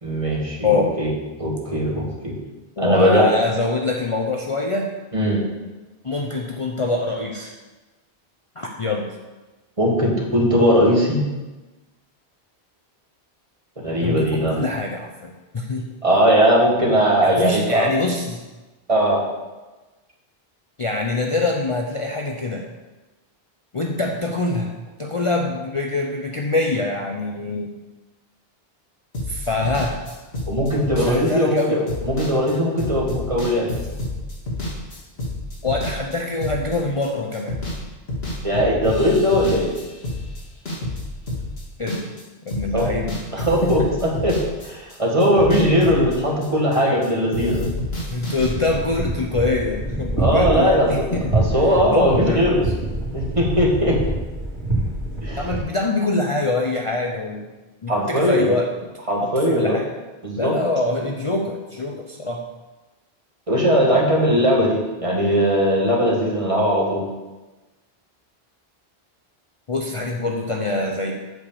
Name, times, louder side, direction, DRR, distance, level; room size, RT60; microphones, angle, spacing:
voice 1, 0.0-1.1 1.4-2.4 2.8-3.3 5.1-5.4 9.8-11.2 13.8-14.6 16.0-17.9 18.9-19.2 30.5-33.7 38.4-39.7 42.7-42.8 43.3-43.8 44.2-44.3 44.6-47.7 50.2-50.9 51.3-52.6 53.1-54.0 55.2-55.4 57.9-58.5 59.1-59.8 60.2-60.5 63.5-67.1, equal, 30° right, -2 dB, 1.8 m, -19 dB
voice 2, 0.6-1.0 2.8-4.9 6.0-7.5 8.6-9.1 14.0-15.8 17.2-18.4 20.8-22.7 23.7-24.7 25.0-27.7 29.3-30.0 30.9-31.8 35.6-37.6 41.8-42.1 42.4-43.2 43.6-43.9 48.1-51.6 51.9-52.7 55.4-57.5 57.8-58.7 59.2-59.9 60.4-62.5 69.7-71.1, left 2 dB, 35° left, 1 dB, 0.7 m, -24 dB
sound 1, 29.1-37.1 37.3-37.8 38.1-42.2 42.5-47.1 47.3-48.5, left 1 dB, 70° left, 2.2 m, -29 dB
sound 2, 48.3-55.6, right 2 dB, 75° right, 2.4 m, -26 dB
8.1 x 4.9 x 6.9 m, 1.2 s
omnidirectional pair, 1.1 m